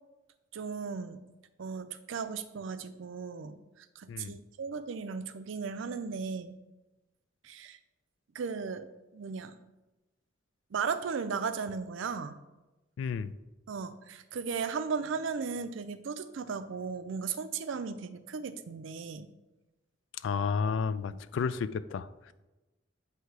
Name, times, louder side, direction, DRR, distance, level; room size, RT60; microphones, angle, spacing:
voice 1, 0.5-1.2 1.6-6.6 7.4-7.8 8.3-8.9 9.1-9.6 10.7-12.4 13.7-19.3 21.1-21.2, right 5 dB, 85° right, 11 dB, 0.4 m, -36 dB
voice 2, 13.0-13.3 20.2-22.3, left 5 dB, 75° left, 14 dB, 0.3 m, -32 dB
7.9 x 2.8 x 4.6 m, 1.1 s
head